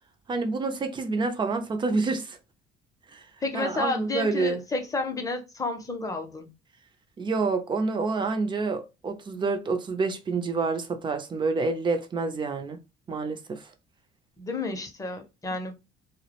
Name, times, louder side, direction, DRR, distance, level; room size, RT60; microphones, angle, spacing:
voice 1, 0.3-2.4 3.1-3.2 3.5-4.6 7.2-12.8 13.1-13.6, right 4 dB, 30° right, 0.5 m, -28 dB
voice 2, 3.4-6.5 14.4-15.7, left 3 dB, 20° left, 0.6 m, -31 dB
2.3 x 2.1 x 2.8 m
cardioid pair, 110°, 17 cm